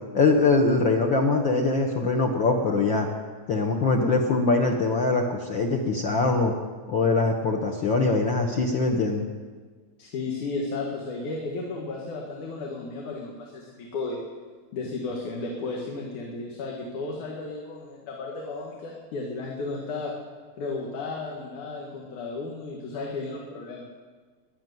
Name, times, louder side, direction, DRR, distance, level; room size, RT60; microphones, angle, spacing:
voice 1, 0.1-3.1 3.5-6.5 6.9-9.2, left 3 dB, 55° left, 1 dB, 1.4 m, -22 dB
voice 2, 10.0-14.2 14.7-20.1 20.6-23.9, left 3 dB, 90° left, -1 dB, 3.3 m, -34 dB
13.5 x 11.0 x 9.4 m, 1.5 s
omnidirectional pair, 3.3 m